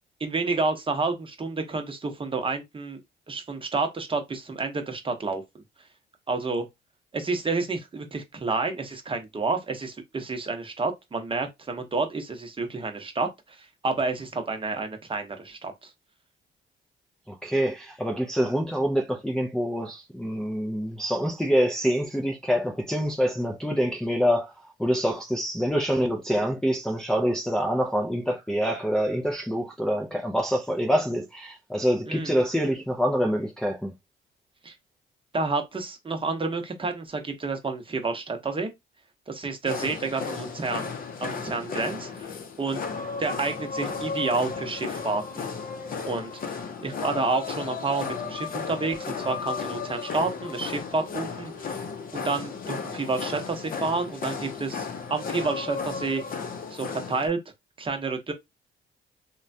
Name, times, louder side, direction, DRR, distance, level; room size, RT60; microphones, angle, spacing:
voice 1, 0.2-3.0 3.3-5.6 6.3-6.7 7.1-15.9 32.1-32.4 34.6-34.7 35.3-38.7 39.3-40.9 41.2-42.3 42.6-42.8 43.2-45.5 46.1-46.3 46.8-51.7 52.1-56.2 56.7-57.4 57.8-58.3, right 3 dB, 25° right, 0.8 m, -29 dB
voice 2, 17.3-24.5 24.8-33.9, equal, 5° left, 0.5 m, -26 dB
sound 1, 39.7-57.3, left 5 dB, 45° left, 0.6 m, -34 dB
3.0 x 2.2 x 2.6 m
cardioid pair, 90°, 20 cm